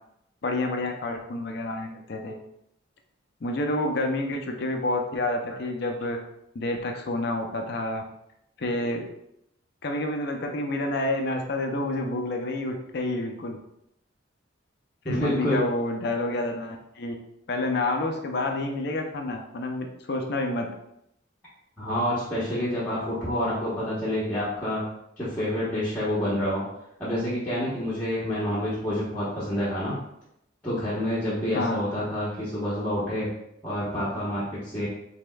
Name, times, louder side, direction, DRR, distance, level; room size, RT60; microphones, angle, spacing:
voice 1, 0.4-2.4 3.4-6.2 6.5-8.0 8.6-9.1 9.8-13.6 15.1-17.1 17.5-20.7 31.5-31.8, left 2 dB, 55° left, 3 dB, 0.5 m, -29 dB
voice 2, 15.0-15.6 21.8-24.9 25.2-26.6 27.0-30.0 30.6-33.3 33.6-34.9, equal, 10° left, -12 dB, 1.0 m, -28 dB
5.1 x 3.5 x 2.3 m, 0.79 s
head